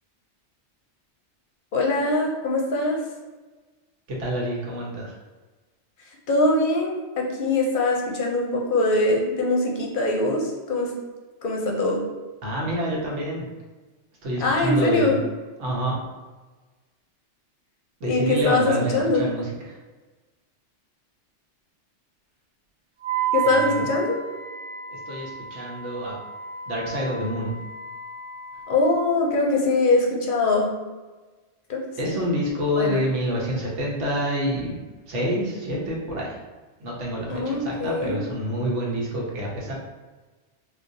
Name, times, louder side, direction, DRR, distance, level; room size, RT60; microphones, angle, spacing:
voice 1, 1.7-3.0 6.3-10.9 11.4-12.0 14.4-15.2 18.0-19.2 23.3-24.2 28.7-30.7 31.7-32.2 32.8-33.0 37.3-38.2, left 2 dB, 55° left, -1 dB, 0.7 m, -22 dB
voice 2, 4.1-5.1 12.4-13.4 14.2-15.2 15.6-15.9 18.0-19.5 23.4-23.8 25.1-26.2 26.7-27.5 32.0-34.8 35.1-36.3 36.8-39.7, equal, 85° right, -3 dB, 1.1 m, -27 dB
Wind instrument woodwind instrument, 23.0-29.2, right 7 dB, 55° right, 0.9 m, -32 dB
3.7 x 2.3 x 2.6 m, 1.3 s
omnidirectional pair, 1.2 m